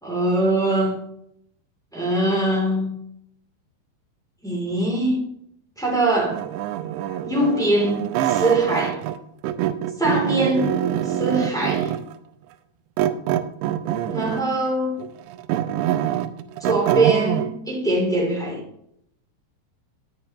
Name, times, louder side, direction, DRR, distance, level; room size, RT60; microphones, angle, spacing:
voice 1, 0.0-1.0 1.9-2.9 4.4-5.2 5.8-6.4 7.2-9.0 10.0-10.8 11.0-11.9 14.1-15.0 16.6-18.6, right 1 dB, ahead, 1.6 m, -22 dB
sound 1, 6.3-9.2 9.4-12.1 13.0-14.5 15.0-17.5, right 11 dB, 85° right, 2.9 m, -25 dB
10.5 x 9.5 x 3.0 m
omnidirectional pair, 5.2 m